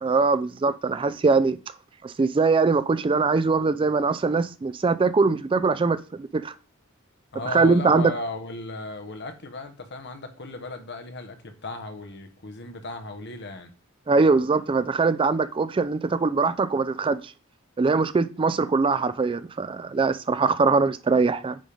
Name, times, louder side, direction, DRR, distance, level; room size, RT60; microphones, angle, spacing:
voice 1, 0.0-1.6 2.0-6.5 7.5-8.1 14.1-17.3 17.8-21.6, right 4 dB, 25° right, 0.3 m, -22 dB
voice 2, 7.3-13.7, left 2 dB, 55° left, 1.3 m, -36 dB
9.1 x 3.7 x 5.2 m
head